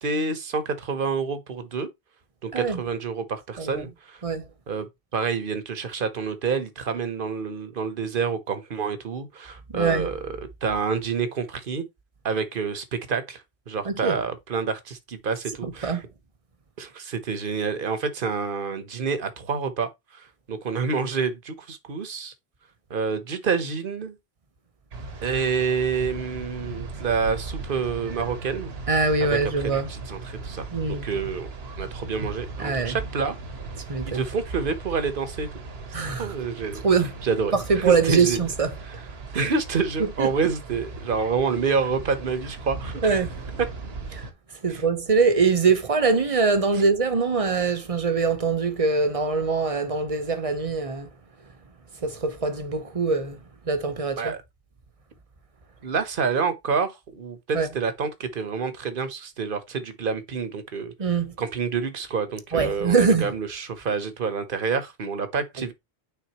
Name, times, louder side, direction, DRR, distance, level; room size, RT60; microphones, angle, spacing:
voice 1, 0.0-1.9 2.4-4.2 4.7-10.3 10.6-11.8 12.2-16.0 16.8-22.3 22.9-24.1 25.2-28.7 29.2-29.4 29.9-31.5 31.8-33.3 34.0-35.5 36.2-36.8 37.2-38.4 39.3-43.2 44.7-44.8 54.2-54.4 55.8-60.9 61.4-65.7, right 5 dB, 60° right, 1.1 m, -28 dB
voice 2, 3.6-3.9 4.2-4.5 9.7-10.1 13.8-14.2 15.6-16.0 28.9-29.9 30.7-31.0 32.6-33.0 33.9-34.2 35.9-36.3 36.8-37.1 37.5-38.7 40.0-40.3 43.0-43.4 44.1-44.3 44.6-51.1 52.0-53.4 53.6-54.3 57.5-57.7 61.0-61.3 62.5-63.3, right 4 dB, 35° right, 0.9 m, -23 dB
sound 1, 24.9-44.3, right 3 dB, 75° right, 1.3 m, -37 dB
9.3 x 3.9 x 2.9 m
omnidirectional pair, 1.0 m